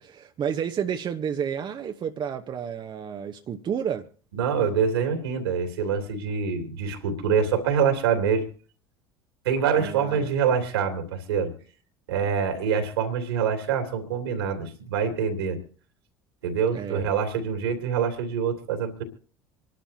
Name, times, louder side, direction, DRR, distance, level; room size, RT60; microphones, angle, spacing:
voice 1, 0.0-4.1 9.8-10.3 16.7-17.1, right 8 dB, 35° right, 1.0 m, -31 dB
voice 2, 4.3-8.5 9.4-11.5 12.1-15.6 16.4-19.0, right 6 dB, 75° right, 3.0 m, -25 dB
26.5 x 12.0 x 2.8 m
hypercardioid pair, 70°, 13 cm